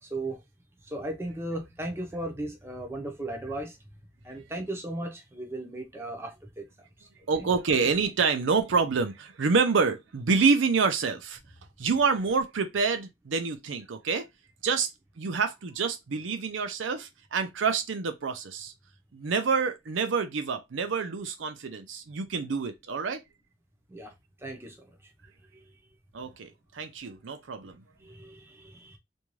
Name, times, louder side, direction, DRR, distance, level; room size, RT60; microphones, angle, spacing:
voice 1, 0.0-0.4 0.8-3.8 4.2-6.7 7.0-7.1 7.3-7.5 23.9-24.1 24.4-25.1 25.5-25.6 28.0-29.0, right 1 dB, 15° right, 0.6 m, -36 dB
voice 2, 7.3-11.4 11.8-14.3 14.6-14.9 15.2-18.7 19.1-23.2 26.1-27.8, right 5 dB, 85° right, 0.5 m, -27 dB
2.6 x 2.3 x 3.1 m
head